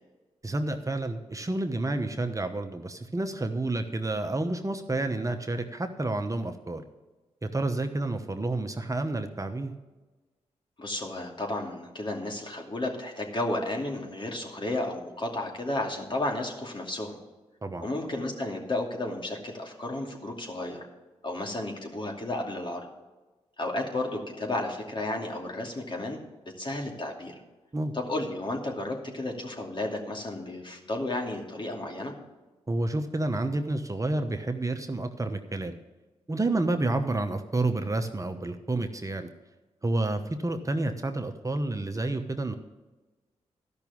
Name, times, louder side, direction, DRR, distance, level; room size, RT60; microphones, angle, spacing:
voice 1, 0.4-6.8 7.4-9.7 17.6-17.9 27.7-27.9 32.7-35.8 36.3-39.3 39.8-42.6, right 2 dB, 25° right, 6 dB, 1.0 m, -29 dB
voice 2, 10.8-17.2 17.8-20.8 21.2-22.8 23.6-26.2 26.6-27.3 27.9-32.1, left 2 dB, 40° left, 1 dB, 2.6 m, -32 dB
12.5 x 6.0 x 7.1 m, 1.2 s
supercardioid pair, 50°, 13 cm